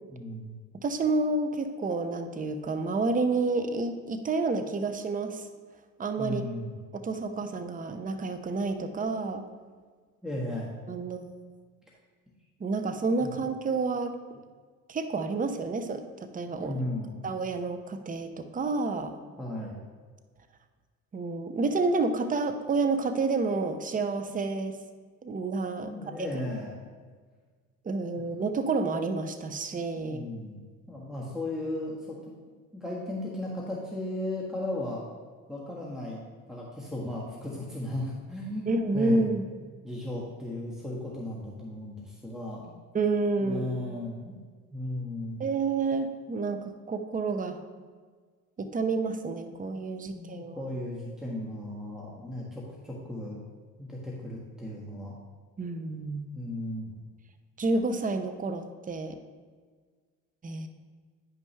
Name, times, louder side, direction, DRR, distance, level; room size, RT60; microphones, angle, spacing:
voice 1, 0.1-0.6 6.2-6.7 10.2-10.7 13.2-13.3 16.6-17.2 19.4-19.8 25.8-26.7 28.1-28.2 29.9-30.6 30.9-32.2 32.7-35.0 35.5-36.2 36.5-38.7 38.9-39.3 39.8-42.7 43.4-44.4 44.7-45.4 50.0-53.4 53.8-55.1 56.3-56.9, left 1 dB, ahead, -4 dB, 1.5 m, -35 dB
voice 2, 0.8-5.5 6.0-6.4 6.9-9.4 10.9-11.3 12.6-14.1 14.9-16.0 16.3-16.8 17.2-19.1 21.1-24.8 25.2-25.9 27.8-30.2 38.7-39.5 42.9-43.7 45.4-47.6 48.6-50.6 55.6-56.3 57.6-59.2 60.4-60.7, right 3 dB, 25° right, 8 dB, 0.7 m, -29 dB
9.6 x 5.3 x 3.3 m, 1.5 s
supercardioid pair, 70°, 35 cm